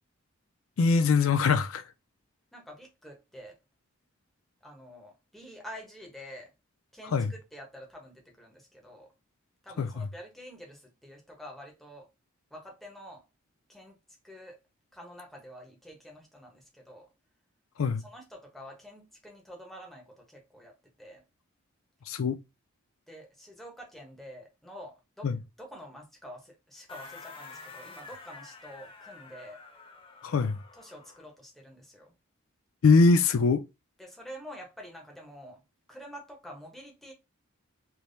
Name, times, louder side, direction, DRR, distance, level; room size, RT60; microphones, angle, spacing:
voice 1, 0.8-1.8 7.1-7.3 9.8-10.1 17.8-18.0 22.1-22.4 25.2-25.4 30.2-30.6 32.8-33.6, left 4 dB, 70° left, 0.4 m, -23 dB
voice 2, 2.5-3.6 4.6-6.5 6.9-9.1 9.6-12.1 12.5-13.2 13.7-14.0 14.2-14.6 14.9-17.1 18.0-21.2 23.1-25.3 25.6-29.6 30.8-32.1 34.0-35.6 35.9-37.1, equal, ahead, 1.0 m, -47 dB
sound 1, 26.9-31.3, left 4 dB, 25° left, 0.6 m, -48 dB
3.4 x 3.0 x 2.6 m
head